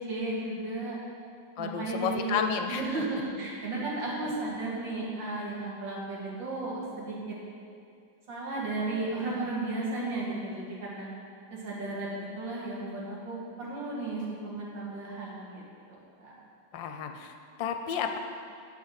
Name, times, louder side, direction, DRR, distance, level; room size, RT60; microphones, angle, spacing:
voice 1, 0.1-1.0 1.6-2.3 2.7-7.3 8.3-11.1 11.5-15.6 15.9-16.4, right 2 dB, 90° right, -5 dB, 2.6 m, -34 dB
voice 2, 1.6-3.0 16.7-18.2, left 7 dB, 90° left, 6 dB, 1.4 m, -32 dB
8.2 x 5.6 x 6.4 m, 2.3 s
omnidirectional pair, 2.0 m